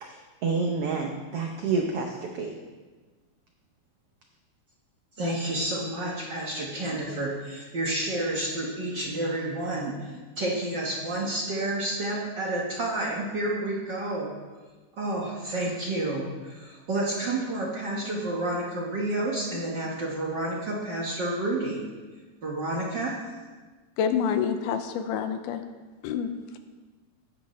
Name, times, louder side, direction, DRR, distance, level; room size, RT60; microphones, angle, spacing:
voice 1, 0.0-2.6, right 4 dB, 80° right, 2 dB, 1.3 m, -29 dB
voice 2, 5.2-14.3 15.0-21.8 22.4-23.2, right 1 dB, 50° right, -4 dB, 1.4 m, -30 dB
voice 3, 24.0-25.6 26.0-26.6, left 7 dB, 80° left, 8 dB, 2.2 m, -28 dB
14.0 x 9.6 x 3.2 m, 1.3 s
omnidirectional pair, 3.8 m